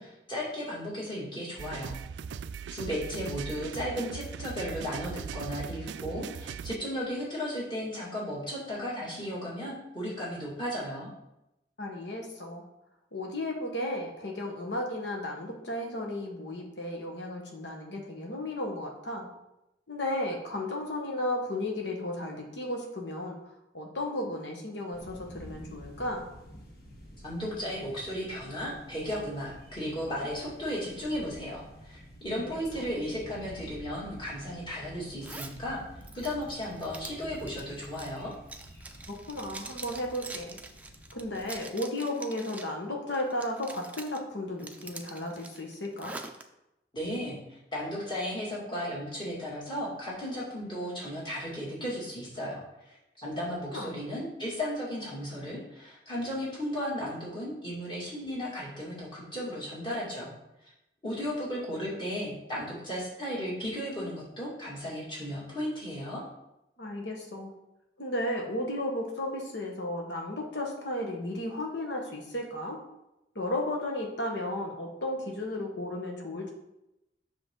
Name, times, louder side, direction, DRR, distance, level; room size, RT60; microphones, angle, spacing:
voice 1, 0.0-2.0 2.7-11.1 27.2-35.8 36.1-38.3 46.9-52.6 53.2-60.3 61.0-66.2, equal, 25° left, -6 dB, 2.5 m, -35 dB
sound 1, 1.6-6.8, right 7 dB, 80° right, 0.3 m, -39 dB
voice 2, 11.8-12.6 13.1-19.3 19.9-23.4 23.7-26.2 32.4-32.5 32.7-32.8 39.3-40.6 41.1-46.2 53.7-54.0 66.8-67.5 68.0-72.8 73.3-76.5, left 1 dB, 80° left, 1 dB, 1.4 m, -34 dB
sound 2, 24.9-41.6, equal, 60° left, 1.5 m, -49 dB
Zipper (clothing), 35.2-35.6 36.0-42.8 43.1-44.2 44.6-46.4, right 3 dB, 10° right, 0.5 m, -45 dB
7.7 x 5.9 x 3.9 m, 0.89 s
head